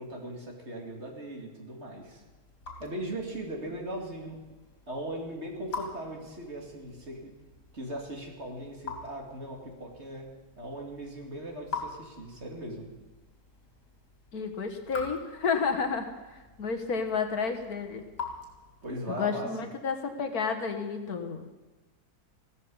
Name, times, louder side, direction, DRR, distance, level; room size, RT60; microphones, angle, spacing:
voice 1, 0.0-2.2 2.8-4.4 4.9-7.3 7.7-10.3 10.6-12.9 18.8-19.7, right 1 dB, 40° right, 0 dB, 2.8 m, -39 dB
Raindrop / Drip, 1.9-19.1, left 4 dB, 80° left, 3.4 m, -45 dB
voice 2, 14.3-18.0 19.2-21.4, left 5 dB, 65° left, 6 dB, 1.8 m, -31 dB
15.5 x 13.5 x 5.5 m, 1.2 s
omnidirectional pair, 1.7 m